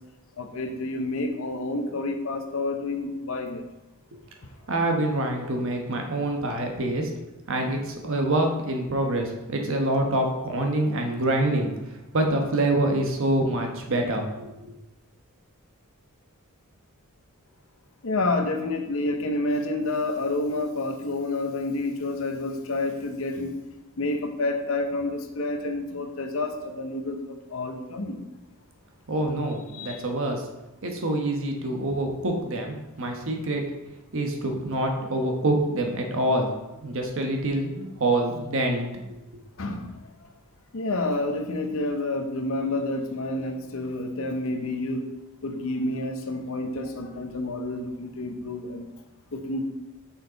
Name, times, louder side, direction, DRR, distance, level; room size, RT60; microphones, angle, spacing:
voice 1, 0.4-3.6 18.0-23.6 24.0-28.2 29.7-30.0 35.0-35.1 39.6-40.0 40.7-45.1 45.4-48.8 49.3-49.7, left 2 dB, 65° left, 5 dB, 0.8 m, -29 dB
voice 2, 4.7-7.1 7.5-11.7 12.1-14.7 29.1-30.5 30.8-33.7 34.1-36.5 36.8-39.2, right 1 dB, 60° right, 3 dB, 1.1 m, -26 dB
6.3 x 5.6 x 4.0 m, 1.0 s
head